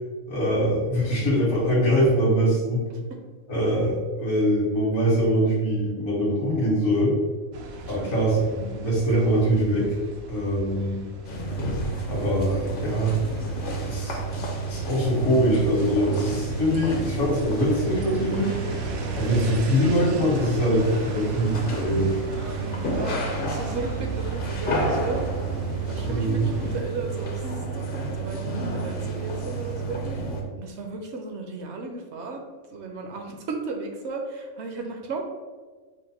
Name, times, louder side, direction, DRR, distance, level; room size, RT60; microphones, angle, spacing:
voice 1, 0.3-2.8 3.5-7.2 7.9-9.9 10.3-11.0 12.1-13.1 13.8-14.2 14.7-18.6 19.1-20.8 21.1-22.1 26.0-26.4, equal, 70° left, -6 dB, 1.5 m, -23 dB
sound 1, 7.5-26.8, right 3 dB, 90° right, 1.0 m, -38 dB
voice 2, 7.7-8.3 22.7-25.3 25.9-30.0 30.6-32.4 32.7-35.2, right 3 dB, 65° right, 3 dB, 0.8 m, -35 dB
sound 2, 11.2-30.4, right 3 dB, 50° left, 0.7 m, -30 dB
5.0 x 2.1 x 4.0 m, 1.4 s
omnidirectional pair, 1.4 m